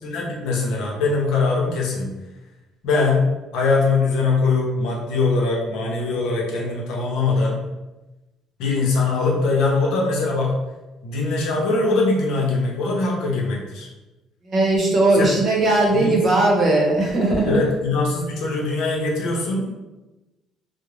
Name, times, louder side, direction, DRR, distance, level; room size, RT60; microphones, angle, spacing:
voice 1, 0.0-2.1 2.8-3.2 3.5-7.6 8.6-10.5 11.0-13.9 15.1-15.4 15.9-16.4 17.5-19.7, left 3 dB, 80° left, -2 dB, 0.7 m, -22 dB
voice 2, 14.5-17.6, right 2 dB, 40° right, -1 dB, 0.7 m, -18 dB
2.4 x 2.0 x 3.1 m, 1.1 s
cardioid pair, 105°, 0 cm